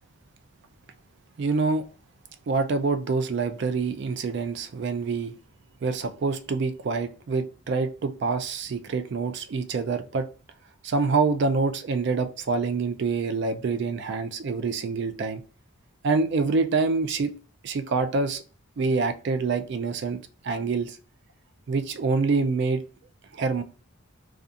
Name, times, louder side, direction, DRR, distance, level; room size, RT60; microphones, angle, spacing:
voice 1, 1.4-1.8 2.5-5.3 5.8-10.3 10.8-15.4 16.0-17.3 17.6-18.4 18.8-20.2 20.4-21.0 21.7-22.8 23.3-23.6, right 4 dB, 50° right, 9 dB, 0.3 m, -26 dB
2.4 x 2.3 x 2.6 m, 0.37 s
head